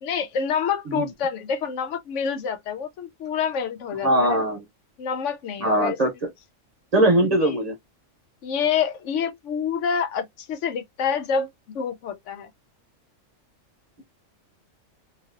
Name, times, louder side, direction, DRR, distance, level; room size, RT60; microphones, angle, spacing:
voice 1, 0.0-4.4 5.0-6.0 7.2-7.6 8.4-12.5, left 6 dB, 70° left, 0.9 m, -27 dB
voice 2, 4.0-4.6 5.6-6.1 6.9-7.7, right 1 dB, 35° right, 0.9 m, -20 dB
3.0 x 2.6 x 2.4 m
omnidirectional pair, 1.4 m